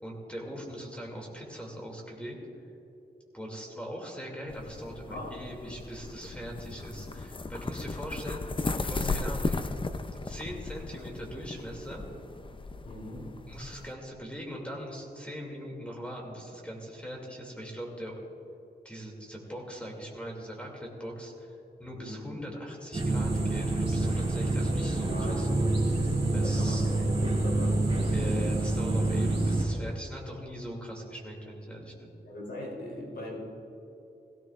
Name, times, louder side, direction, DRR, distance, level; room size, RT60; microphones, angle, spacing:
voice 1, 0.0-2.4 3.3-8.4 8.8-9.6 10.1-12.0 13.5-18.1 18.8-21.5 21.8-26.9 28.1-32.2, equal, 5° left, -1 dB, 2.5 m, -41 dB
sound 1, 4.5-13.9, left 3 dB, 30° left, 0.5 m, -36 dB
voice 2, 12.8-13.3 21.9-22.3 25.1-25.4 26.4-28.1 32.2-33.4, left 1 dB, 65° left, -3 dB, 3.4 m, -39 dB
sound 2, 22.9-29.7, right 2 dB, 30° right, 2.6 m, -27 dB
18.0 x 16.5 x 2.5 m, 2.9 s
wide cardioid pair, 95°, 18 cm